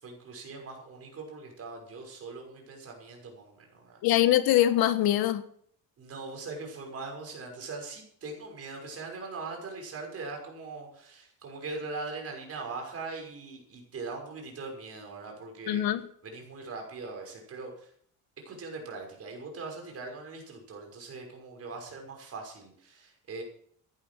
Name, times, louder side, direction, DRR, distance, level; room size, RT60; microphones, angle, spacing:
voice 1, 0.0-4.0 6.0-15.9 16.2-17.9 18.4-23.4, right 3 dB, 40° right, 1 dB, 6.0 m, -41 dB
voice 2, 4.0-5.4 15.7-16.1, left 13 dB, 90° left, 12 dB, 1.4 m, -23 dB
16.0 x 10.5 x 6.3 m, 0.62 s
cardioid pair, 145°, 36 cm